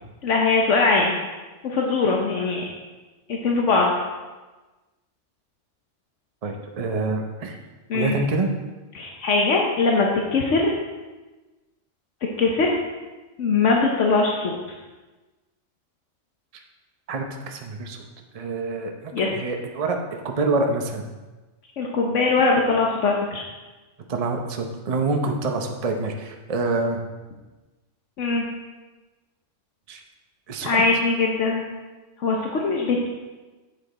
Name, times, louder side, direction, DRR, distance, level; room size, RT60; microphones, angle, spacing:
voice 1, 0.2-1.1 1.6-2.6 3.3-3.9 7.9-8.2 8.9-10.7 12.4-12.7 13.4-14.6 19.1-19.3 21.8-23.4 28.2-28.5 30.6-31.6 32.2-33.1, left 3 dB, 75° left, -1 dB, 1.2 m, -21 dB
voice 2, 6.4-7.6 7.9-8.5 17.1-18.0 18.3-21.1 24.1-27.0 29.9-30.0 30.5-30.8, right 3 dB, 35° right, 3 dB, 0.7 m, -26 dB
8.1 x 6.7 x 4.1 m, 1.2 s
omnidirectional pair, 1.3 m